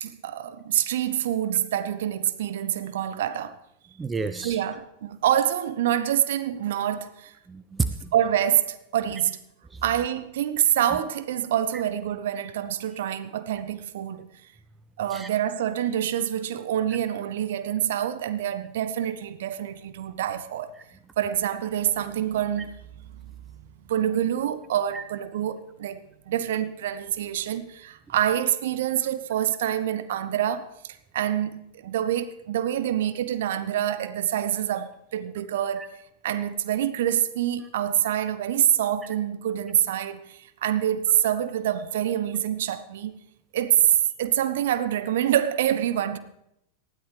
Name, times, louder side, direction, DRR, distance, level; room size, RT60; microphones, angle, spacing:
voice 1, 0.0-3.6 4.4-7.3 8.1-9.4 9.8-14.3 15.0-20.7 21.2-22.9 23.6-43.1 43.5-43.8 44.2-46.2, right 11 dB, 55° right, 0.8 m, -26 dB
voice 2, 4.0-4.6 7.5-8.1 15.1-15.3 24.9-25.0, right 4 dB, 15° right, 0.5 m, -30 dB
19.0 x 12.5 x 3.4 m
figure-of-eight pair, 90°, 0 cm